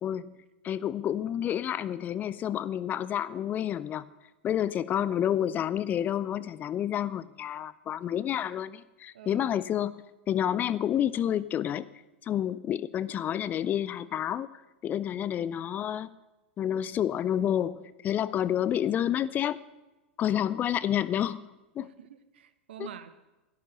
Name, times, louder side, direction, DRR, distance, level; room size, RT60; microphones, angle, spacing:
voice 1, 0.0-4.1 4.4-10.0 10.3-11.9 12.2-16.1 16.6-19.6 20.2-21.5 21.8-21.9 22.8-22.9, left 10 dB, 30° left, 18 dB, 0.5 m, -29 dB
voice 2, 9.1-9.6 21.8-23.1, right 9 dB, 65° right, 12 dB, 1.1 m, -46 dB
12.0 x 12.0 x 6.4 m, 1.1 s
figure-of-eight pair, 90°, 6 cm